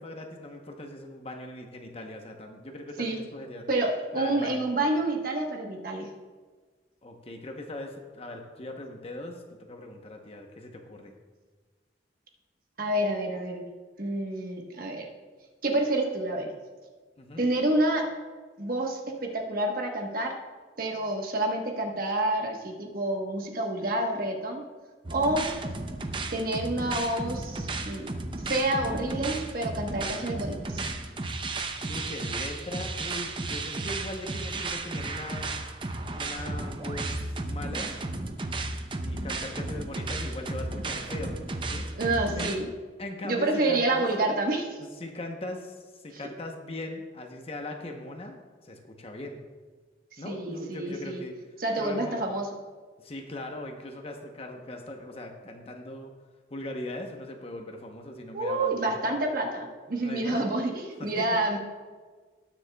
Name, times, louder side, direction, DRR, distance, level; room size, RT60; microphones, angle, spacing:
voice 1, 0.0-3.7 4.1-4.6 7.0-11.2 17.2-17.4 31.9-35.6 36.1-38.0 39.0-41.4 41.7-41.9 42.4-42.5 43.0-44.0 44.8-45.7 46.0-49.4 50.2-51.3 51.8-52.2 53.0-56.1 56.5-59.0 59.9-60.5 61.0-61.4, left 1 dB, 35° left, 3 dB, 0.9 m, -40 dB
voice 2, 3.7-6.1 12.8-13.6 14.0-15.1 15.6-16.5 17.4-18.1 18.6-20.4 20.8-24.6 25.1-25.5 26.3-28.1 28.5-30.8 42.0-42.7 43.2-44.8 50.2-51.2 51.6-52.5 58.3-61.6, right 2 dB, 55° right, 2 dB, 1.2 m, -28 dB
sound 1, 25.0-42.5, right 2 dB, 30° right, 0.6 m, -34 dB
19.5 x 6.5 x 2.3 m, 1.4 s
head